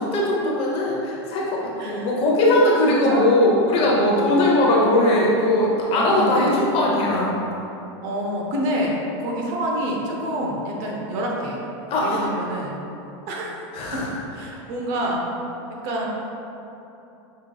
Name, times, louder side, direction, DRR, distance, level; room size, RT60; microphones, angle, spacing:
voice 1, 0.1-7.4 11.9-12.3 13.7-14.1, left 1 dB, 40° left, -4 dB, 0.9 m, -19 dB
voice 2, 1.8-2.1 2.8-3.3 3.8-4.6 5.9-6.6 8.0-11.6 12.0-12.7 13.3-13.6 13.9-14.0 14.3-15.3 15.7-16.1, right 1 dB, 55° right, -2 dB, 0.8 m, -27 dB
5.6 x 3.0 x 2.3 m, 2.9 s
supercardioid pair, 130°, 15 cm